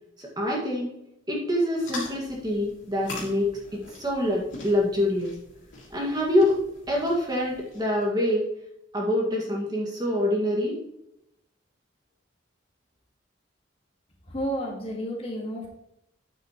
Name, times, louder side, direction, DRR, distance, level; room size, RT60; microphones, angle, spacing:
voice 1, 0.2-0.9 1.3-5.4 5.9-6.6 6.9-8.5 8.9-10.8, left 1 dB, 20° right, -2 dB, 2.0 m, -25 dB
sound 1, 1.7-8.1, left 2 dB, 90° left, 2.9 m, -42 dB
voice 2, 14.3-15.7, equal, 30° left, -1 dB, 1.8 m, -31 dB
9.0 x 7.7 x 3.1 m, 0.80 s
head